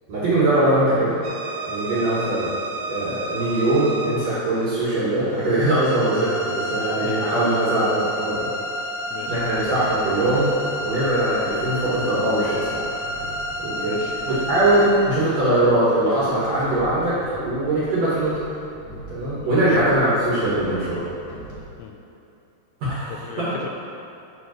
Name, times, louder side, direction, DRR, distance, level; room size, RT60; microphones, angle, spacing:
voice 1, 0.1-1.2 1.7-2.5 2.9-8.5 9.3-12.9 13.6-13.9 14.3-18.4 19.1-21.0 22.8-23.5, right 1 dB, 60° right, -9 dB, 2.0 m, -21 dB
sound 1, 1.2-16.3, equal, 90° right, 2.9 m, -31 dB
voice 2, 9.1-9.4 13.7-14.4 19.4-19.7 21.8-22.0 23.1-23.7, left 8 dB, 90° left, 3 dB, 2.8 m, -36 dB
sound 2, 9.2-21.6, right 1 dB, 60° left, 2.6 m, -42 dB
7.2 x 6.4 x 3.1 m, 2.8 s
omnidirectional pair, 4.8 m